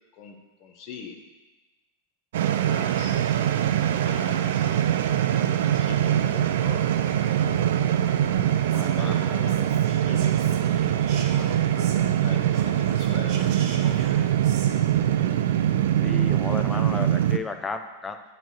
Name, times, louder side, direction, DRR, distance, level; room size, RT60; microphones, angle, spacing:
voice 1, 0.1-1.2 2.6-3.2 4.0-4.9 5.5-7.7 8.8-14.1, left 6 dB, 40° left, 4 dB, 0.8 m, -43 dB
sound 1, 2.3-17.4, right 11 dB, 55° right, 0.3 m, -23 dB
voice 2, 8.6-9.3 16.0-18.2, left 4 dB, 15° left, 7 dB, 0.5 m, -34 dB
Whispering, 8.7-12.2 12.5-14.7, right 5 dB, 40° right, 0.8 m, -43 dB
9.2 x 4.1 x 3.0 m, 1.1 s
figure-of-eight pair, 90°, 0 cm